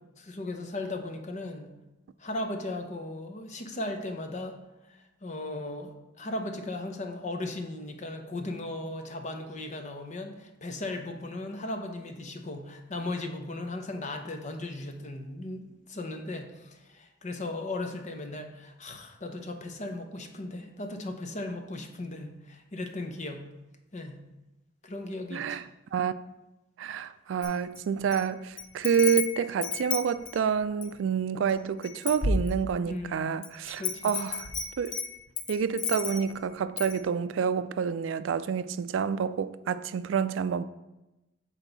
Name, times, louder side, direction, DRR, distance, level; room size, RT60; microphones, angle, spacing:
voice 1, 0.2-1.7 2.2-4.6 4.9-23.5 23.9-24.2 24.8-25.6 32.9-33.4 33.8-34.1, left 2 dB, 40° left, 0.8 m, -37 dB
voice 2, 25.3-25.6 25.9-26.1 26.8-34.5 34.8-35.0 35.5-40.7, right 7 dB, 75° right, 0.3 m, -28 dB
Wind chime, 27.4-28.2 28.6-31.0 31.5-31.6 31.8-32.9 33.4-36.4 36.8-37.0, left 4 dB, 75° left, 0.7 m, -32 dB
7.9 x 4.5 x 3.9 m
head